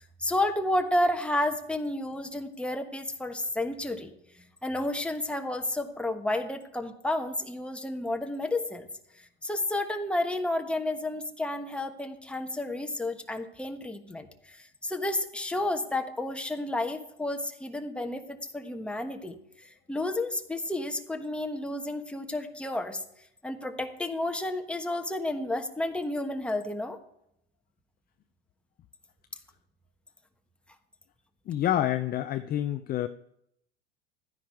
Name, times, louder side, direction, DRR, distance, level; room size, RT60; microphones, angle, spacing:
voice 1, 0.0-8.9 9.4-19.4 19.6-23.0 23.4-27.0, left 1 dB, 5° left, 4 dB, 1.2 m, -31 dB
voice 2, 31.5-33.1, left 12 dB, 30° left, 9 dB, 0.5 m, -28 dB
13.5 x 9.8 x 4.7 m, 0.77 s
hypercardioid pair, 100°, 32 cm